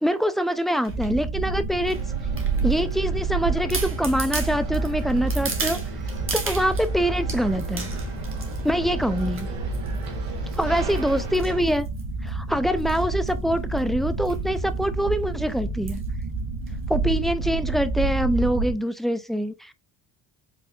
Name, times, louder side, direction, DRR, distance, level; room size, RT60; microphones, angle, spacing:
voice 1, 0.0-2.0 2.6-5.8 6.3-7.9 8.6-9.5 10.6-11.9 12.2-16.0 16.9-19.7, equal, ahead, 0.5 m, -24 dB
sound 1, 0.8-1.1 1.9-2.9 3.4-3.5 3.7-6.9 7.3-8.7 9.2-9.5 9.7-10.1 10.5-12.3 12.8-13.0 13.3-13.4 13.6-13.8 14.3-14.4 14.8-14.9 15.9-16.1 16.7-16.8, right 3 dB, 25° right, 1.4 m, -35 dB
sound 2, 0.9-18.7, right 3 dB, 55° right, 2.3 m, -29 dB
sound 3, 1.8-11.6, right 3 dB, 90° right, 2.0 m, -38 dB
5.2 x 3.4 x 2.5 m
supercardioid pair, 75°, 47 cm